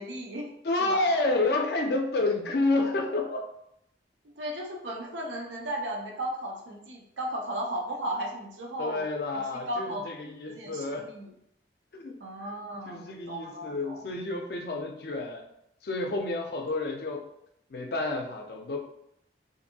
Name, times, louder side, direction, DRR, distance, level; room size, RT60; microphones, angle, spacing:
voice 1, 0.0-0.5 0.8-1.1 4.2-9.1 9.3-10.1 10.5-11.3 12.2-14.1, right 1 dB, 85° right, 0 dB, 0.5 m, -35 dB
voice 2, 0.6-3.4 8.8-11.1 11.9-12.2 12.9-15.4 15.8-17.3 17.7-18.8, left 2 dB, 55° left, 3 dB, 0.4 m, -29 dB
2.6 x 2.5 x 2.7 m, 0.77 s
head